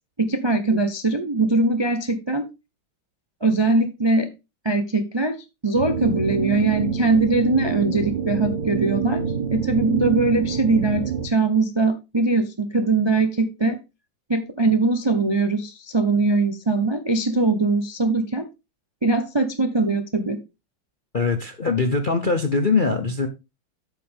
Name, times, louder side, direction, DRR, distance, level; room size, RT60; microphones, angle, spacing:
voice 1, 0.2-2.4 3.4-4.3 4.6-5.4 5.6-9.2 9.5-13.8 14.3-18.4 19.0-20.4, right 3 dB, 45° right, 0.3 m, -21 dB
sound 1, 5.7-11.3, right 7 dB, 60° right, 1.7 m, -26 dB
voice 2, 21.1-23.3, left 4 dB, 50° left, 0.6 m, -22 dB
9.2 x 7.6 x 3.6 m
omnidirectional pair, 2.2 m